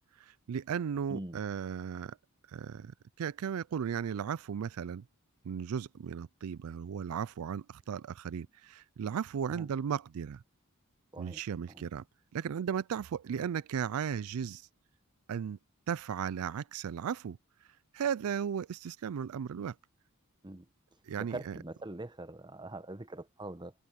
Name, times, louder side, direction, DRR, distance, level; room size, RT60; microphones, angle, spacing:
voice 1, 0.2-2.2 2.5-5.0 5.4-10.4 11.2-12.0 12.3-14.7 15.3-15.6 15.9-17.4 17.9-19.8 21.1-21.6, right 7 dB, 75° right, 0.4 m, -36 dB
voice 2, 21.2-23.7, right 2 dB, 20° right, 0.9 m, -43 dB
head